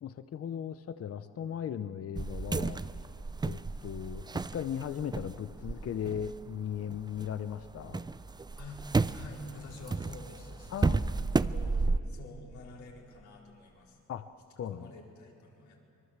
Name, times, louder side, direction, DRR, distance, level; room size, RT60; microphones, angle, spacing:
voice 1, 0.0-2.8 3.4-8.0 10.7-11.1 14.1-14.3 14.6-14.9, left 9 dB, 50° left, 12 dB, 0.9 m, -37 dB
sound 1, 2.2-7.3 7.6-12.0, right 3 dB, 15° right, 0.5 m, -33 dB
voice 2, 9.1-11.1 11.5-11.8 12.1-14.0 14.7-15.8, left 3 dB, 70° left, -1 dB, 4.6 m, -48 dB
25.0 x 22.0 x 7.5 m, 2.7 s
cardioid pair, 90°, 30 cm